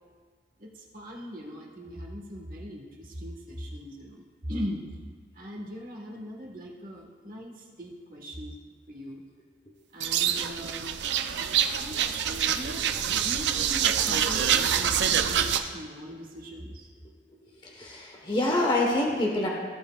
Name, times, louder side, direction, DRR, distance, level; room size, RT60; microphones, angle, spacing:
voice 1, 0.6-4.2 4.5-4.8 5.4-8.5 8.9-9.2 9.9-11.0 11.8-12.0 12.5-12.9 13.2-16.9, equal, 50° right, -1 dB, 1.4 m, -40 dB
sound 1, 10.0-15.6, right 8 dB, 80° right, 0.5 m, -26 dB
voice 2, 17.4-19.5, left 1 dB, 25° left, -1 dB, 1.1 m, -27 dB
15.0 x 7.8 x 2.3 m, 1.5 s
head